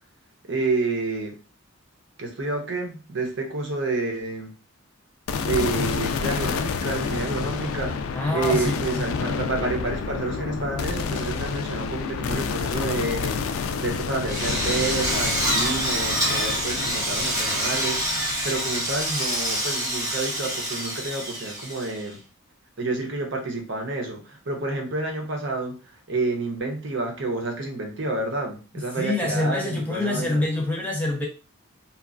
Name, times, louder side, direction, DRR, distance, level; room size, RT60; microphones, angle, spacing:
voice 1, 0.5-1.4 2.2-4.5 5.4-8.0 8.3-18.0 18.4-22.2 22.8-30.4, right 3 dB, 60° right, 0.7 m, -29 dB
sound 1, 5.3-19.6, left 5 dB, 80° left, 0.3 m, -29 dB
voice 2, 8.1-9.1 28.9-31.3, left 2 dB, 5° left, 0.5 m, -26 dB
Drill, 14.3-22.1, equal, 15° right, 0.9 m, -26 dB
2.9 x 2.3 x 2.4 m
head